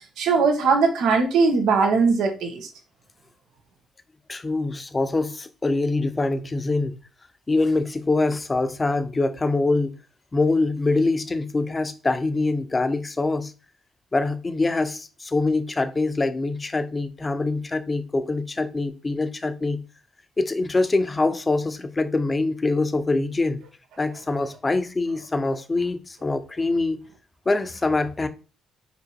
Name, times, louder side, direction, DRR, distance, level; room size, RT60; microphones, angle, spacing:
voice 1, 0.2-2.7, right 4 dB, 85° right, 1.7 m, -20 dB
voice 2, 4.3-7.0 7.5-10.0 10.3-13.5 14.1-19.8 20.4-23.6 24.0-27.0 27.5-28.3, left 3 dB, 25° left, 0.8 m, -24 dB
5.1 x 4.7 x 4.8 m
cardioid pair, 90°, 0 cm